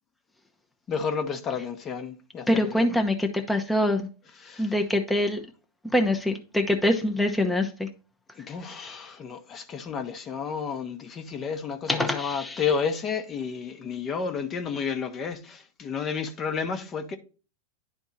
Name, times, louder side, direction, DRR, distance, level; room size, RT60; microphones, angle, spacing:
voice 1, 0.9-2.9 4.4-4.7 8.4-17.2, left 6 dB, 30° left, 1.0 m, -31 dB
voice 2, 2.5-4.1 4.6-5.4 5.8-7.9 11.9-12.6, left 1 dB, 5° left, 0.8 m, -24 dB
10.5 x 3.5 x 4.1 m
hypercardioid pair, 125°, 0 cm